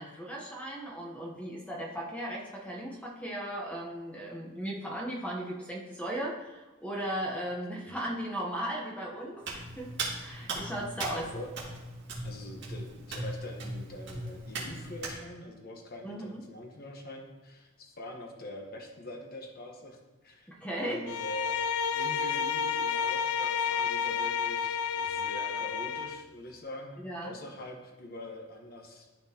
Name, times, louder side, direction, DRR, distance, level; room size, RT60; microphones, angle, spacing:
voice 1, 0.0-11.3 16.0-16.4 20.5-21.0 27.0-27.3, right 1 dB, 5° left, -3 dB, 0.8 m, -37 dB
Hands, 9.4-15.2, right 2 dB, 55° right, 1.9 m, -38 dB
voice 2, 11.1-11.5 12.2-20.5 20.8-21.6 21.9-29.1, left 1 dB, 45° left, 2 dB, 1.0 m, -44 dB
Bowed string instrument, 21.1-26.3, left 7 dB, 80° left, 0.4 m, -30 dB
12.5 x 4.4 x 2.8 m, 1.2 s
head